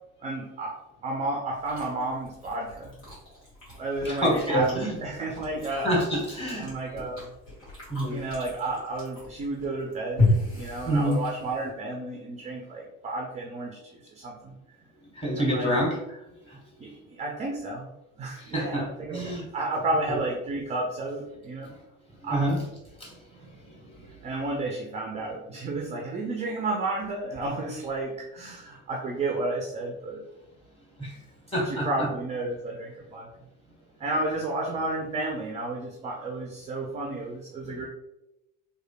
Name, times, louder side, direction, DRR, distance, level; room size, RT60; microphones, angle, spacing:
voice 1, 0.2-3.0 3.8-5.9 6.6-7.3 8.1-14.6 15.3-15.8 16.8-17.9 18.2-21.7 22.2-22.4 24.2-30.2 31.6-33.3 34.0-37.9, right 2 dB, 20° right, -1 dB, 0.3 m, -32 dB
Chewing mastication, 1.5-11.7, left 2 dB, 80° left, 1.3 m, -33 dB
voice 2, 4.0-5.0 5.8-6.7 7.9-8.2 10.9-11.2 15.1-16.2 16.4-16.9 18.4-19.5 20.1-20.2 22.2-22.6 23.0-24.0 31.0-31.2 31.5-32.1 37.7-37.8, equal, 15° left, -4 dB, 1.1 m, -28 dB
3.1 x 2.4 x 2.2 m, 0.89 s
figure-of-eight pair, 55°, 41 cm